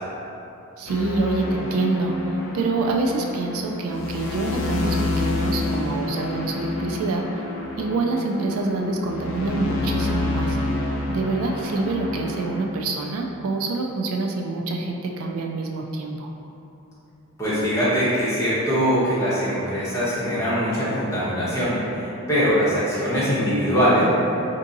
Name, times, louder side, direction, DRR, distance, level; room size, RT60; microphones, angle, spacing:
voice 1, 0.8-7.4 7.8-10.6 11.1-16.3, right 3 dB, 75° right, 2 dB, 0.3 m, -26 dB
sound 1, 0.9-12.6, left 2 dB, 60° left, 0.4 m, -28 dB
voice 2, 17.4-24.0, equal, 15° left, -11 dB, 0.9 m, -22 dB
4.4 x 2.6 x 2.6 m, 2.9 s
head